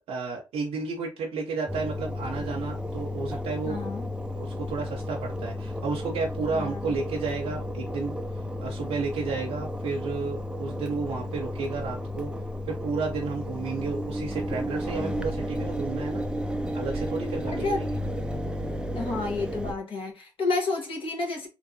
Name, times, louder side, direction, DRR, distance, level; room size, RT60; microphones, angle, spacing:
voice 1, 0.1-3.8 4.3-8.2 8.6-12.3 12.7-16.2 16.7-17.9, right 4 dB, 85° right, 0.6 m, -32 dB
Engine, 1.7-19.7, equal, 10° right, 0.4 m, -33 dB
voice 2, 3.6-4.1 6.5-7.0 17.5-17.8 18.9-21.5, left 3 dB, 60° left, 1.2 m, -30 dB
2.8 x 2.6 x 2.6 m
supercardioid pair, 60°, 10 cm